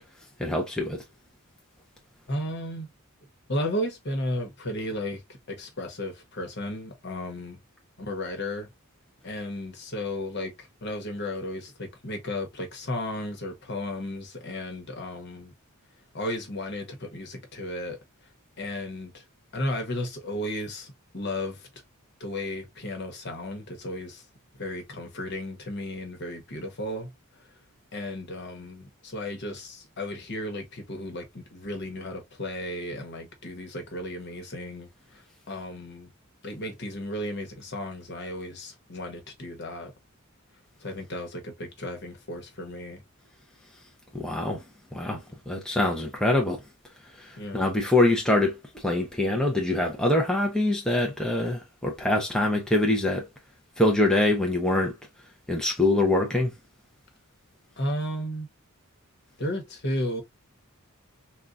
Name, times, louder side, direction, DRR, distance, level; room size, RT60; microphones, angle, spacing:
voice 1, 0.4-1.0 44.1-44.6 44.9-45.2 45.5-46.6 47.2-48.6 48.8-53.3 53.8-54.9 55.5-56.5, left 2 dB, 5° left, 0.6 m, -24 dB
voice 2, 2.3-2.9 3.5-5.2 5.5-7.6 8.0-8.7 9.2-15.5 16.1-18.0 18.6-19.2 19.5-21.7 22.2-24.2 24.6-27.1 27.9-35.2 35.5-36.1 36.4-39.9 40.8-43.0 47.4-47.7 57.8-58.5 59.4-60.2, left 1 dB, 50° left, 1.1 m, -34 dB
3.7 x 2.4 x 2.5 m
head